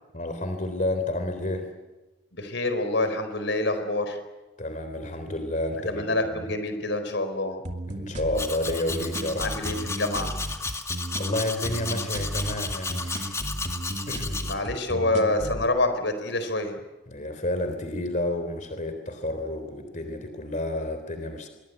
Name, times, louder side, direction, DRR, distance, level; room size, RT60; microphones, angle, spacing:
voice 1, 0.1-1.7 4.6-6.4 7.9-9.5 11.2-13.4 14.1-14.4 17.1-21.5, left 1 dB, 40° left, 8 dB, 3.5 m, -30 dB
voice 2, 2.3-4.2 5.9-7.6 9.4-10.3 14.4-16.8, left 2 dB, 75° left, 9 dB, 4.4 m, -27 dB
sound 1, 7.6-15.6, right 1 dB, 40° right, 2.6 m, -34 dB
Domestic sounds home sounds, 8.3-14.5, left 3 dB, 15° left, 2.0 m, -34 dB
26.0 x 23.5 x 8.2 m, 1.1 s
head